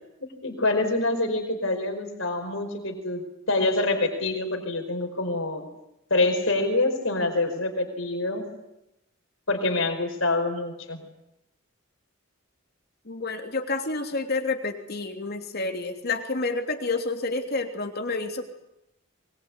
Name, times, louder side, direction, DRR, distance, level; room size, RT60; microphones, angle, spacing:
voice 1, 0.4-3.2 3.5-5.6 6.1-8.5 9.5-11.0, left 2 dB, 70° left, 4 dB, 4.9 m, -26 dB
voice 2, 13.0-18.4, left 3 dB, 50° left, 6 dB, 3.1 m, -29 dB
23.5 x 22.0 x 9.8 m, 0.86 s
head